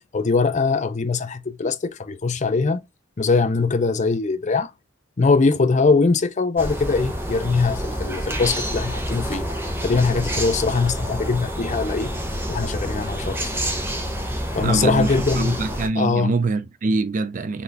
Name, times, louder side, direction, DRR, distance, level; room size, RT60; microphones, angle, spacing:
voice 1, 0.1-2.8 3.2-4.7 5.2-9.5 9.8-12.1 12.5-13.5 14.5-15.6 16.0-16.3, left 4 dB, 40° left, 0.5 m, -21 dB
sound 1, 6.6-15.9, equal, 10° right, 1.0 m, -28 dB
voice 2, 14.6-17.6, right 3 dB, 40° right, 0.4 m, -24 dB
4.1 x 3.2 x 2.7 m
head